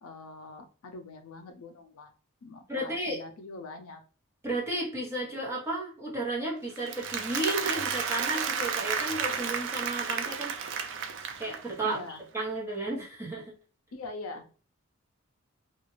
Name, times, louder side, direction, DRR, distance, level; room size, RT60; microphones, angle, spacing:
voice 1, 0.0-2.1 2.4-4.0 11.8-12.2 13.9-14.4, left 3 dB, 75° left, 5 dB, 0.5 m, -43 dB
voice 2, 2.7-3.2 4.4-10.5 11.4-12.0 12.3-13.4, right 1 dB, 10° right, -5 dB, 1.0 m, -33 dB
Applause, 6.8-11.8, right 6 dB, 55° right, 0.4 m, -32 dB
2.4 x 2.3 x 3.1 m, 0.38 s
head